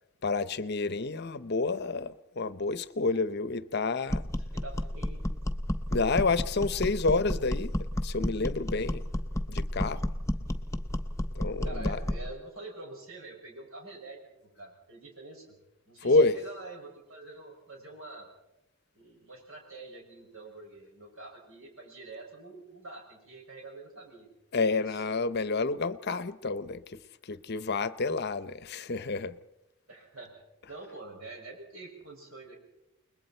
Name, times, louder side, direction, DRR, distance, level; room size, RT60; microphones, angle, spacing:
voice 1, 0.2-4.2 5.9-7.7 8.0-9.0 9.5-10.1 11.3-12.0 16.0-16.4 24.5-29.4, left 3 dB, 50° left, 14 dB, 0.8 m, -29 dB
sound 1, 4.1-12.3, equal, 15° left, 0.9 m, -31 dB
voice 2, 4.5-5.2 11.6-15.4 15.9-18.3 18.9-24.3 24.5-25.0 29.9-32.6, right 2 dB, 80° right, 1 dB, 6.6 m, -46 dB
29.0 x 21.0 x 4.4 m, 0.91 s
head